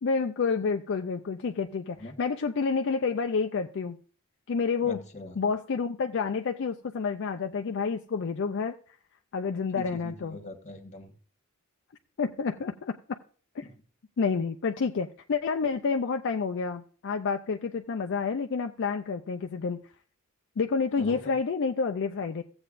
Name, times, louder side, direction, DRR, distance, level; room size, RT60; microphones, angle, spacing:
voice 1, 0.0-4.0 4.5-5.0 5.4-9.0 9.3-10.4 12.2-13.2 13.6-13.7 14.2-19.8 20.6-22.4, left 5 dB, 55° left, 5 dB, 0.4 m, -29 dB
voice 2, 4.8-5.3 9.7-11.1 21.0-21.3, left 2 dB, 35° left, 6 dB, 1.4 m, -41 dB
15.5 x 7.8 x 2.5 m, 0.42 s
head